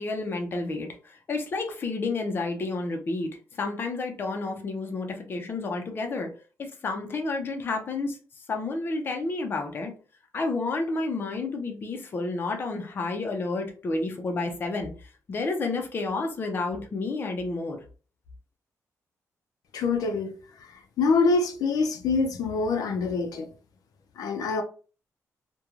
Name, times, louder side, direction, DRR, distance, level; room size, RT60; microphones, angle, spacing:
voice 1, 0.0-6.3 6.6-8.2 8.5-9.9 10.3-17.8, left 3 dB, 35° left, 0.5 m, -30 dB
voice 2, 19.7-20.3 21.0-23.5 24.2-24.6, left 4 dB, 90° left, 0.4 m, -25 dB
3.0 x 2.2 x 2.4 m
wide cardioid pair, 175°, 6 cm